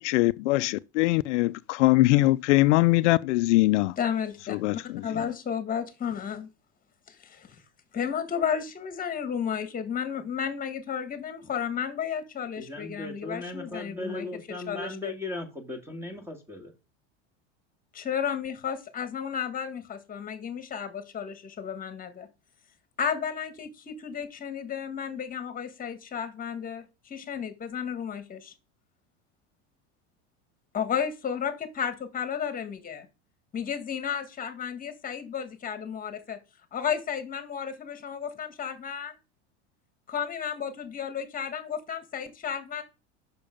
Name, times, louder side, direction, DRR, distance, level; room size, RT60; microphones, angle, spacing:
voice 1, 0.0-3.9 4.5-5.3, left 19 dB, 80° left, 0.5 m, -22 dB
voice 2, 4.0-4.6 5.0-6.5 7.1-7.6 7.9-15.1 17.9-22.3 23.0-28.5 30.7-33.1 33.5-36.4 36.7-39.1 40.1-42.8, left 7 dB, 25° left, 1.6 m, -33 dB
voice 3, 12.6-16.7, left 2 dB, 5° right, 2.0 m, -37 dB
6.9 x 6.0 x 5.2 m
supercardioid pair, 125°, 35 cm